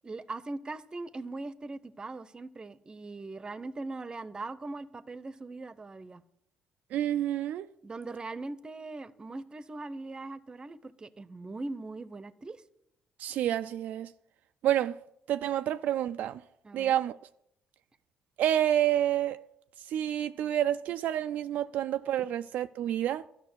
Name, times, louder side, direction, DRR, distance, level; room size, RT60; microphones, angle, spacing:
voice 1, 0.0-6.2 7.8-12.6 16.6-17.0, right 3 dB, 30° right, 0.7 m, -40 dB
voice 2, 6.9-7.7 13.2-14.1 14.6-15.0 15.3-16.4 16.7-17.2 18.4-19.4 19.9-23.3, right 11 dB, 75° right, 0.3 m, -28 dB
12.5 x 5.9 x 7.9 m
supercardioid pair, 70°, 3 cm